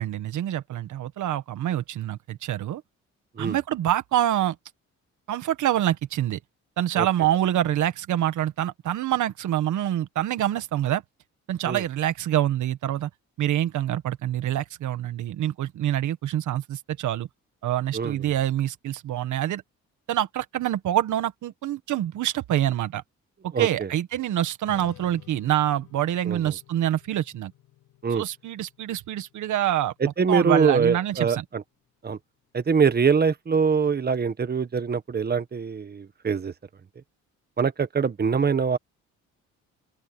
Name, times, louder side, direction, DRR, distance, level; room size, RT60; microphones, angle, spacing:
voice 1, 0.0-2.8 3.4-4.6 5.3-6.4 6.8-11.0 11.5-13.1 13.4-17.3 17.6-19.6 20.1-23.0 23.4-27.5 28.1-29.9 30.3-31.4, right 12 dB, 75° right, 1.7 m, -26 dB
voice 2, 17.9-18.3 23.5-23.9 26.2-26.5 28.0-28.2 30.0-31.6 32.0-32.2 32.5-36.5 37.6-38.8, right 5 dB, 30° right, 1.6 m, -24 dB
Strum, 24.6-30.9, left 14 dB, 90° left, 5.2 m, -52 dB
open air
cardioid pair, 90°, 30 cm